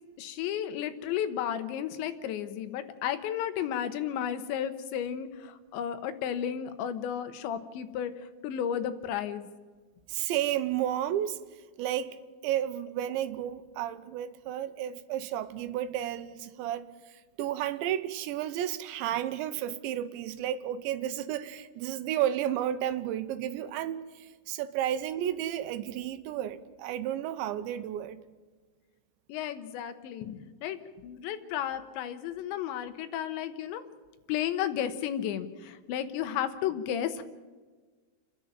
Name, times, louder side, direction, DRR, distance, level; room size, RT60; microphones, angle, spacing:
voice 1, 0.2-9.5 29.3-33.9 34.3-37.2, left 9 dB, 90° left, 3.4 m, -33 dB
voice 2, 10.1-11.4 11.8-12.2 12.4-16.9 17.4-28.2, right 11 dB, 90° right, 3.3 m, -32 dB
29.5 x 10.5 x 8.9 m
omnidirectional pair, 5.1 m